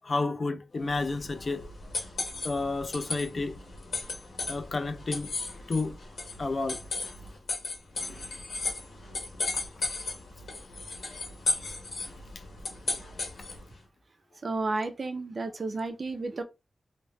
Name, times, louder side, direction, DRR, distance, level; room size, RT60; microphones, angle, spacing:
voice 1, 0.0-1.7 2.4-3.6 4.5-6.0 6.4-6.8, left 3 dB, 35° left, 0.4 m, -31 dB
sound 1, 0.9-13.7, left 3 dB, 75° left, 1.2 m, -36 dB
voice 2, 14.4-16.4, right 3 dB, 40° right, 0.5 m, -32 dB
3.0 x 2.7 x 3.0 m
wide cardioid pair, 175°, 0 cm